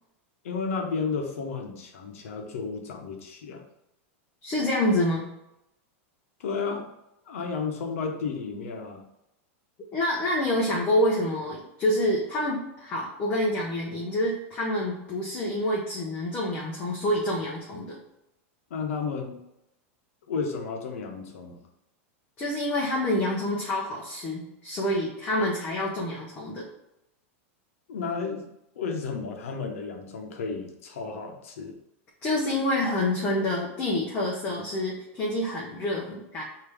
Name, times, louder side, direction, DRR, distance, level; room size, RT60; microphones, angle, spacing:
voice 1, 0.4-3.6 6.4-6.9 7.3-9.0 18.7-19.4 20.3-21.6 27.9-31.7, left 5 dB, 85° left, 3 dB, 0.9 m, -32 dB
voice 2, 4.4-5.3 9.9-18.0 22.4-26.7 32.2-36.4, left 1 dB, 20° left, -3 dB, 0.6 m, -27 dB
5.1 x 2.8 x 3.4 m, 0.87 s
supercardioid pair, 165°, 7 cm